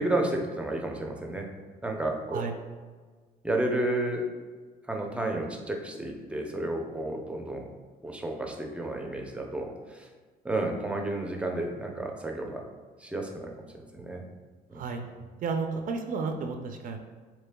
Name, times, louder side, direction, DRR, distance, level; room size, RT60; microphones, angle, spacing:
voice 1, 0.0-1.5 1.8-2.5 3.4-4.2 4.9-7.7 8.0-10.1 10.4-12.6 13.0-14.2 14.7-14.8, right 1 dB, 5° right, 1 dB, 0.7 m, -31 dB
voice 2, 15.4-17.0, right 4 dB, 55° right, 4 dB, 0.5 m, -32 dB
6.9 x 3.2 x 2.3 m, 1.5 s
cardioid pair, 110°, 17 cm